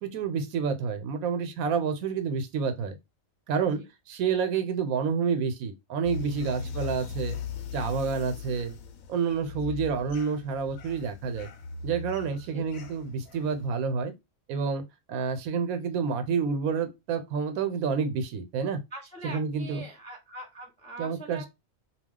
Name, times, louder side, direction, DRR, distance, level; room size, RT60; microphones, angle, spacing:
voice 1, 0.0-3.0 3.5-7.4 7.7-8.8 9.1-11.5 11.8-14.1 14.5-18.8 19.2-19.8 21.0-21.5, right 6 dB, 85° right, 1.1 m, -29 dB
sound 1, 6.0-13.7, left 5 dB, 75° left, 1.0 m, -39 dB
voice 2, 18.9-21.5, right 2 dB, 10° left, 0.4 m, -43 dB
2.4 x 2.3 x 3.6 m
omnidirectional pair, 1.5 m